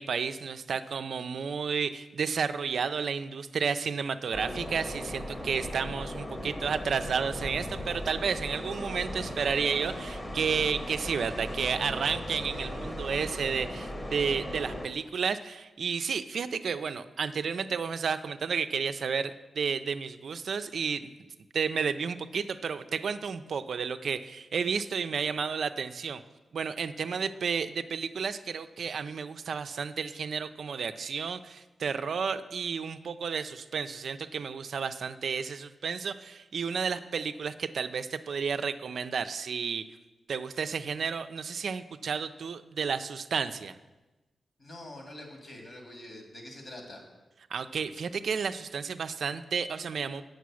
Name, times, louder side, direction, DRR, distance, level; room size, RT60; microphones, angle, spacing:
voice 1, 0.0-19.3 19.6-21.1 21.5-26.2 26.5-39.9 40.3-43.8 47.5-50.2, right 6 dB, 75° right, 10 dB, 0.4 m, -32 dB
sound 1, 4.3-14.9, left 1 dB, 30° left, 1.2 m, -37 dB
voice 2, 44.6-47.0, left 1 dB, 60° left, 2 dB, 2.5 m, -45 dB
8.2 x 6.5 x 6.2 m, 1.1 s
cardioid pair, 55°, 0 cm